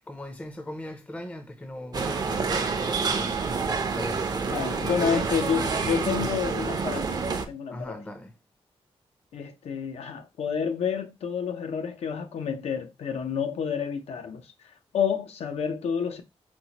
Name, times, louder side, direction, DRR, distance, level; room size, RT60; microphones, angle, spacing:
voice 1, 0.1-3.4 3.9-5.3 7.7-8.4, left 1 dB, 10° left, 0.5 m, -38 dB
sound 1, 1.9-7.5, right 4 dB, 40° right, 0.5 m, -28 dB
voice 2, 4.5-8.0 9.3-14.5 14.9-16.2, left 7 dB, 75° left, 0.6 m, -29 dB
4.3 x 2.1 x 2.8 m
cardioid pair, 105°, 11 cm